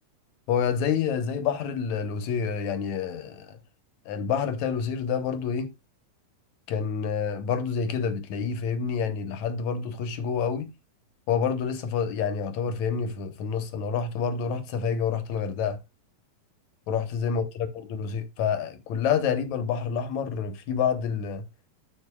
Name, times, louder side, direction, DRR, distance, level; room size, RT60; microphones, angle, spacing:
voice 1, 0.5-3.6 4.1-5.7 6.7-10.7 11.3-15.8 16.9-21.4, left 6 dB, 70° left, 2.1 m, -28 dB
13.0 x 5.2 x 2.3 m
omnidirectional pair, 3.8 m